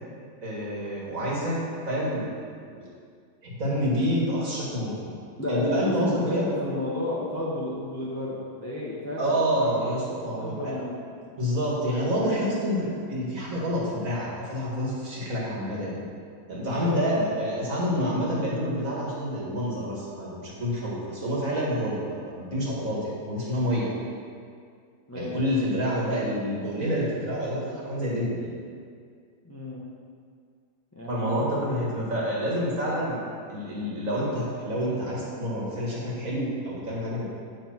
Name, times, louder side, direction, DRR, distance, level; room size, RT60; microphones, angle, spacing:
voice 1, 0.4-1.6 1.9-2.3 2.6-2.9 3.4-5.1 5.5-6.5 9.2-10.7 11.4-16.0 16.5-23.9 25.1-28.5 31.1-33.2 33.5-37.2, equal, 45° right, -5 dB, 2.0 m, -28 dB
voice 2, 5.4-11.2 16.6-17.0 25.1-25.4 26.8-27.0 29.4-29.8 30.9-31.6, left 1 dB, 15° left, -6 dB, 0.7 m, -31 dB
8.0 x 6.0 x 4.5 m, 2.2 s
omnidirectional pair, 2.1 m